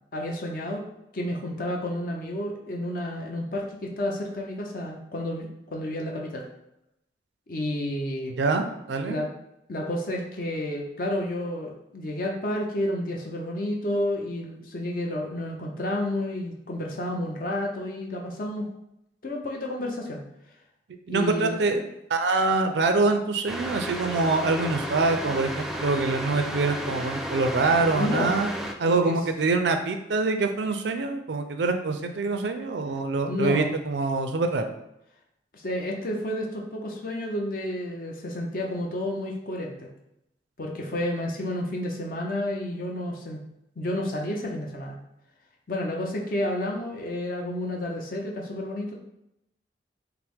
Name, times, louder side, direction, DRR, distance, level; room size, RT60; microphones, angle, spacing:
voice 1, 0.1-0.9 1.1-6.4 7.5-8.3 9.1-9.3 9.7-18.7 19.2-20.2 21.1-21.6 28.0-28.3 28.8-29.2 33.3-33.7 35.5-39.9 40.6-43.4 43.8-45.0 45.7-49.0, left 1 dB, 55° left, 0 dB, 0.7 m, -30 dB
voice 2, 8.4-9.2 21.1-21.8 22.1-28.5 28.8-34.7, right 3 dB, 75° right, 6 dB, 0.4 m, -25 dB
sound 1, 23.5-28.7, equal, ahead, 0.3 m, -33 dB
5.6 x 2.1 x 3.5 m, 0.83 s
head